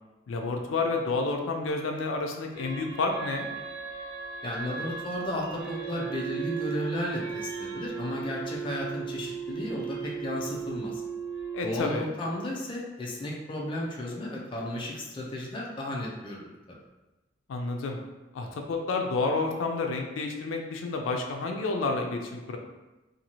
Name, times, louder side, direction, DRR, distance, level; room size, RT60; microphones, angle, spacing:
voice 1, 0.3-3.5 11.5-12.1 17.5-18.0 18.3-22.6, left 3 dB, 85° left, 3 dB, 0.4 m, -30 dB
sound 1, 2.5-11.8, right 6 dB, 45° right, 1.0 m, -36 dB
voice 2, 4.4-11.0 11.6-16.8, left 1 dB, 25° left, -3 dB, 0.4 m, -34 dB
2.6 x 2.3 x 2.9 m, 1.1 s
head